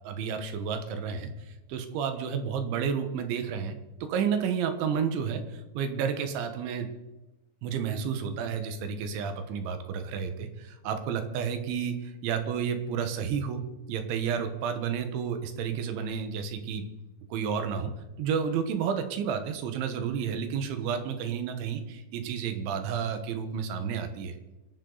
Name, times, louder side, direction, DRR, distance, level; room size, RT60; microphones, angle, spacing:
voice 1, 0.0-3.8 4.0-6.9 7.6-13.6 13.9-16.9 17.3-17.9 18.2-24.4, right 7 dB, 90° right, 8 dB, 3.7 m, -31 dB
26.0 x 12.0 x 4.0 m, 1.1 s
omnidirectional pair, 5.2 m